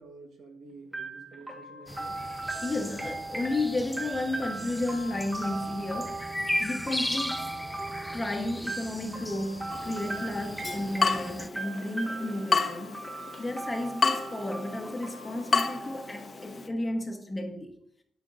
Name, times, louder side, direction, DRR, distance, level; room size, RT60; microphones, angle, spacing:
voice 1, 0.0-2.2, right 3 dB, 75° right, 1.3 m, -50 dB
sound 1, 0.9-16.7, right 2 dB, 10° right, 1.3 m, -39 dB
sound 2, 1.9-11.5, left 1 dB, 5° left, 0.3 m, -37 dB
voice 2, 2.6-6.3 6.6-7.5 8.1-13.0 13.4-17.7, left 2 dB, 20° left, 1.0 m, -33 dB
Water tap faucet / Drip, 9.7-16.7, left 4 dB, 40° left, 0.7 m, -31 dB
12.0 x 5.2 x 2.5 m
cardioid pair, 110°, 0 cm